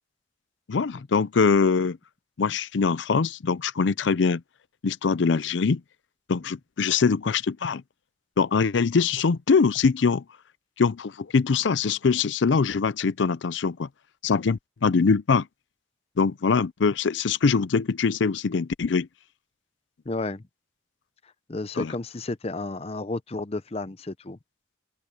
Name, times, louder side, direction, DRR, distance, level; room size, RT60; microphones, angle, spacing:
voice 1, 0.7-2.0 2.4-4.4 4.8-5.8 6.3-7.8 8.4-10.2 10.8-13.9 14.2-15.5 16.2-19.1 21.8-21.9, left 5 dB, 75° left, 0.5 m, -23 dB
voice 2, 20.1-20.4 21.5-24.4, left 2 dB, 35° left, 0.7 m, -32 dB
open air
head